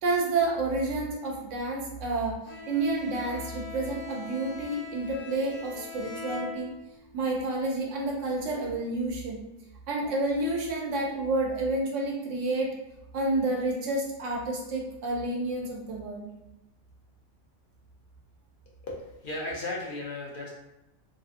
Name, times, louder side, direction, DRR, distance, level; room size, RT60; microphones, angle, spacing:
voice 1, 0.0-6.7 7.1-9.4 9.9-12.7 13.1-16.3, right 2 dB, 80° right, -1 dB, 1.0 m, -29 dB
Bowed string instrument, 2.5-7.1, left 4 dB, 80° left, 1.0 m, -42 dB
voice 2, 18.8-20.5, left 2 dB, 60° left, -3 dB, 0.5 m, -35 dB
2.7 x 2.5 x 2.4 m, 0.93 s
omnidirectional pair, 1.2 m